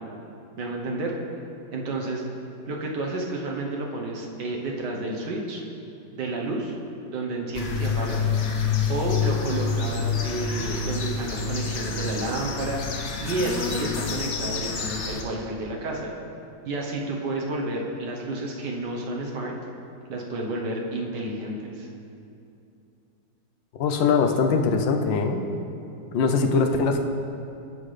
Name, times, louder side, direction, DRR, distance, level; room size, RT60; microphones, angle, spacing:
voice 1, 0.6-1.1 1.7-2.2 2.7-5.6 6.1-6.8 7.1-8.3 8.9-12.8 13.2-16.1 16.6-19.5 20.1-21.9, right 2 dB, 65° right, -1 dB, 1.6 m, -30 dB
sound 1, 7.5-15.2, left 5 dB, 60° left, 0.8 m, -28 dB
voice 2, 23.8-25.4 26.1-27.0, left 4 dB, 75° left, 4 dB, 1.4 m, -22 dB
17.0 x 5.7 x 3.3 m, 2.7 s
omnidirectional pair, 2.2 m